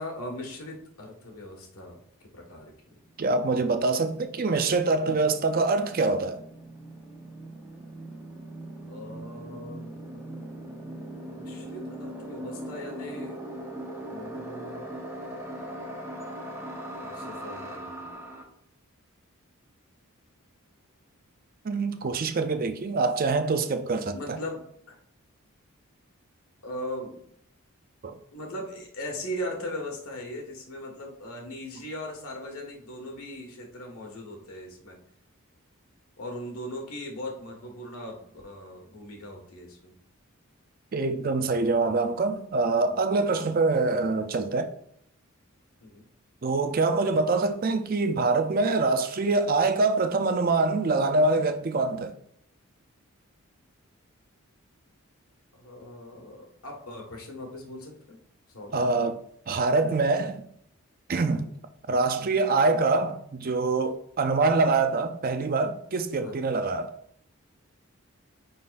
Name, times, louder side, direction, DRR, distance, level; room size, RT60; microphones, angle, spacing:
voice 1, 0.0-2.0 2.3-2.7 8.9-9.9 11.3-13.4 14.1-14.9 17.0-18.1 24.1-24.6 24.9-25.0 26.6-27.2 28.3-35.0 36.2-39.9 45.8-46.0 55.5-58.2 58.5-58.8 61.3-61.5 66.2-66.3, left 1 dB, 85° left, 1.6 m, -39 dB
sound 1, 2.9-3.0 3.2-18.4, right 1 dB, 10° right, 0.8 m, -40 dB
voice 2, 3.2-6.4 21.6-24.4 28.0-28.2 40.9-44.7 46.4-52.1 58.7-59.2 59.5-60.4 61.1-61.5 61.9-66.9, right 3 dB, 40° right, 0.5 m, -25 dB
9.3 x 3.9 x 2.5 m
head